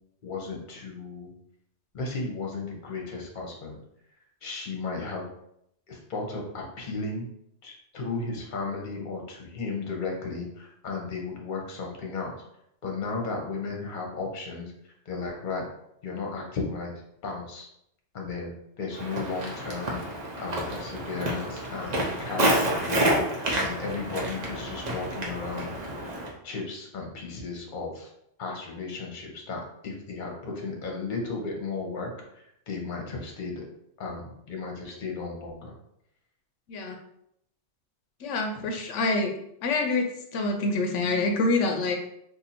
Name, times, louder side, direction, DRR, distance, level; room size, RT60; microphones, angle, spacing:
voice 1, 0.2-1.3 1.9-3.8 4.4-5.3 5.9-7.3 7.6-12.3 12.8-15.6 16.0-16.9 17.2-17.7 18.1-18.5 18.8-20.0 20.4-28.1 28.4-33.6 34.0-35.7 38.6-38.7, left 4 dB, 45° left, 0 dB, 0.9 m, -35 dB
Walk footsteps, 18.9-26.3, right 1 dB, 45° right, 0.7 m, -29 dB
voice 2, 38.2-39.3 39.6-40.0 40.3-42.0, left 3 dB, 85° left, 3 dB, 0.9 m, -26 dB
2.7 x 2.6 x 4.1 m, 0.75 s
omnidirectional pair, 1.2 m